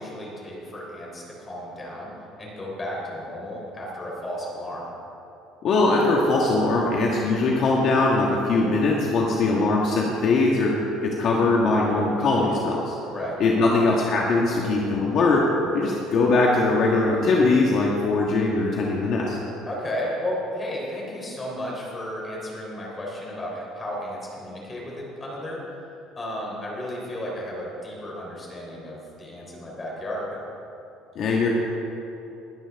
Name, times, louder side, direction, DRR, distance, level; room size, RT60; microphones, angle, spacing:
voice 1, 0.0-2.1 2.4-4.9 9.2-9.6 13.1-13.4 19.7-25.6 26.2-30.5, left 1 dB, 20° left, -3 dB, 3.5 m, -33 dB
voice 2, 5.6-10.7 11.0-12.9 13.4-15.4 15.7-19.4 31.1-31.5, left 3 dB, 45° left, -2 dB, 1.5 m, -21 dB
20.0 x 12.0 x 3.6 m, 2.9 s
cardioid pair, 155°, 0 cm